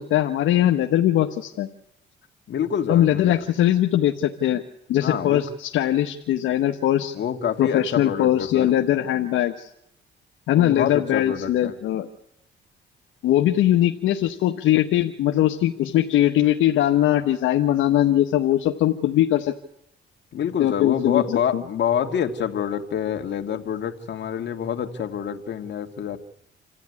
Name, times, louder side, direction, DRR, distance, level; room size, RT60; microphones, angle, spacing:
voice 1, 0.0-1.7 2.9-4.6 4.9-7.1 7.6-9.7 10.5-12.1 13.2-19.5 20.6-21.2 21.5-21.6, left 12 dB, 85° left, 4 dB, 1.3 m, -21 dB
voice 2, 2.5-3.4 5.0-5.4 7.1-8.8 10.5-11.7 20.3-26.2, left 8 dB, 65° left, 6 dB, 2.2 m, -27 dB
27.5 x 14.5 x 9.8 m, 0.79 s
cardioid pair, 90°, 20 cm